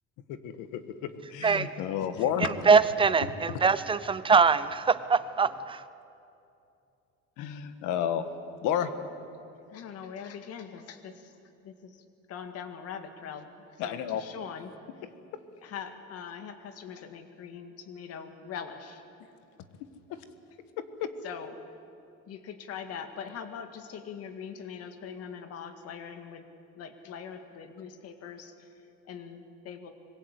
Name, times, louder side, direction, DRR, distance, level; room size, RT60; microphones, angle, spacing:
voice 1, 0.3-2.5 7.4-8.2 8.6-8.9 13.8-14.2 20.8-21.1, left 9 dB, 85° left, 10 dB, 1.7 m, -31 dB
voice 2, 2.4-5.8, right 5 dB, 15° right, 14 dB, 0.6 m, -23 dB
voice 3, 9.7-11.4 11.6-14.7 15.6-19.0 21.2-21.6 22.3-26.5 26.7-29.9, left 7 dB, 55° left, 7 dB, 2.0 m, -42 dB
25.5 x 21.5 x 8.5 m, 2.7 s
cardioid pair, 155°, 29 cm